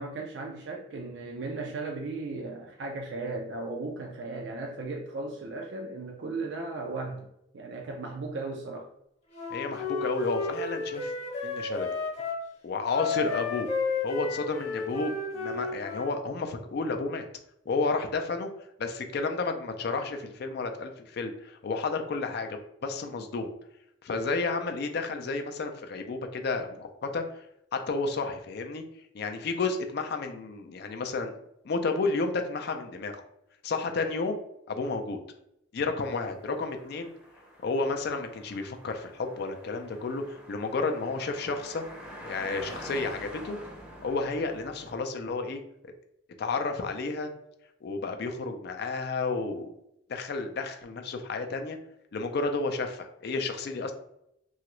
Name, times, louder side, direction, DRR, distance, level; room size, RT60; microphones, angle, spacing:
voice 1, 0.0-7.3 7.5-8.9, right 3 dB, 65° right, 0.4 m, -36 dB
Wind instrument woodwind instrument, 9.3-12.4 12.9-16.1, left 4 dB, 35° left, 0.9 m, -32 dB
voice 2, 9.5-11.1 11.4-11.9 12.6-13.7 14.0-17.2 17.7-18.5 18.8-23.5 24.0-27.4 27.7-28.8 29.1-31.3 31.6-33.2 33.6-34.4 34.7-35.2 35.7-37.1 37.6-41.8 42.2-43.6 44.0-45.6 46.4-47.3 47.8-49.7 50.1-51.8 52.1-53.9, left 3 dB, 55° left, 0.4 m, -31 dB
sound 1, 36.0-45.0, equal, 5° right, 0.6 m, -46 dB
2.9 x 2.3 x 3.0 m
head